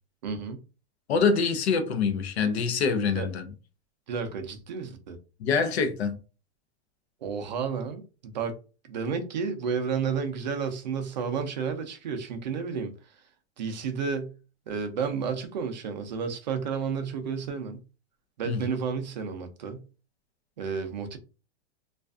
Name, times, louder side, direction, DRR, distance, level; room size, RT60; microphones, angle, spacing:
voice 1, 0.2-0.6 3.1-3.3 4.1-5.2 7.2-8.6 8.9-12.9 13.6-14.3 14.7-17.8 18.4-19.8 20.6-21.2, right 6 dB, 45° right, 0.4 m, -31 dB
voice 2, 1.1-3.4 5.4-6.2 18.5-18.6, left 5 dB, 70° left, 0.6 m, -25 dB
2.4 x 2.3 x 2.3 m
supercardioid pair, 180°, 33 cm